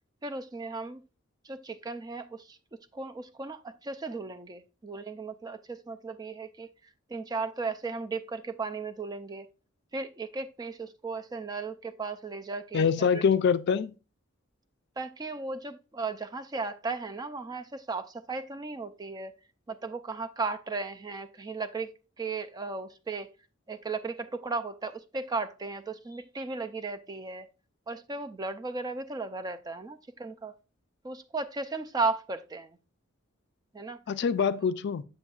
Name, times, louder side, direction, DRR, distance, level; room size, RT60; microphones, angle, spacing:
voice 1, 0.2-1.0 1.4-2.6 2.9-6.7 7.1-9.5 9.9-12.9 13.1-13.2 15.0-19.3 19.7-23.3 23.7-27.5 27.9-30.5 31.0-32.8 33.7-34.0, right 3 dB, 20° right, 0.4 m, -35 dB
voice 2, 12.7-13.9 34.1-35.0, left 6 dB, 60° left, 0.3 m, -25 dB
6.9 x 6.8 x 2.4 m
head